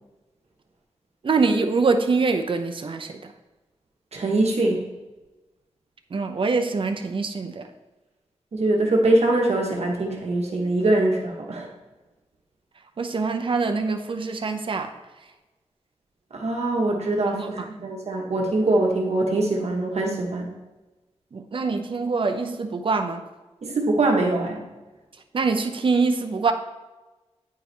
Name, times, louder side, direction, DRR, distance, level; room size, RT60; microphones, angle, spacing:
voice 1, 1.2-3.3 6.1-7.7 13.0-14.9 17.3-17.7 21.3-23.2 25.3-26.5, right 4 dB, 50° right, 5 dB, 0.6 m, -24 dB
voice 2, 4.1-4.9 8.5-11.7 16.3-20.5 23.6-24.6, right 2 dB, 65° right, 0 dB, 1.2 m, -23 dB
9.3 x 4.7 x 3.3 m, 1.1 s
wide cardioid pair, 90°, 12 cm